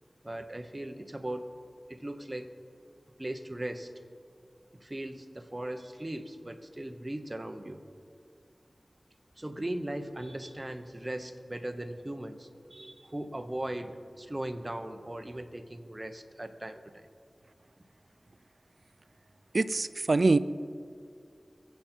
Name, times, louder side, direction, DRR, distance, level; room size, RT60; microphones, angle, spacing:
voice 1, 0.2-1.5 1.9-2.5 3.2-3.9 4.7-7.8 9.4-17.1, right 1 dB, 30° right, 7 dB, 1.0 m, -38 dB
voice 2, 19.5-20.4, right 3 dB, 65° right, 14 dB, 0.4 m, -24 dB
23.0 x 8.2 x 4.5 m, 2.3 s
wide cardioid pair, 50°, 0 cm